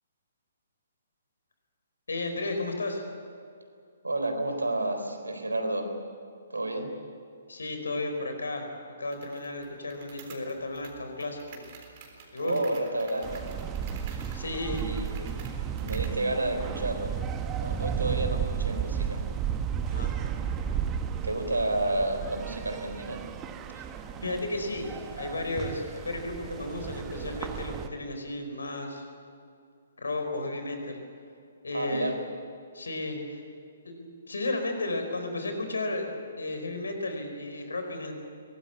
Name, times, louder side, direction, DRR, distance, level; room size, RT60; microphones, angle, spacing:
voice 1, 2.1-3.0 7.5-8.6 9.0-11.6 12.3-12.6 14.3-14.8 19.9-20.1 23.7-23.8 24.2-29.0 30.0-31.0 31.6-32.1 32.7-33.4 33.8-38.1, left 2 dB, 65° left, 5 dB, 4.6 m, -33 dB
voice 2, 4.0-5.9 6.5-6.9 12.4-13.5 14.7-15.4 15.8-17.2 17.5-19.2 21.2-23.2 31.7-32.2, right 2 dB, 75° right, 5 dB, 4.0 m, -30 dB
sound 1, 9.1-16.2, right 5 dB, 35° right, 3.8 m, -50 dB
sound 2, 13.2-27.9, right 8 dB, 20° right, 1.3 m, -33 dB
23.0 x 19.5 x 8.4 m, 2.4 s
figure-of-eight pair, 130°, 0 cm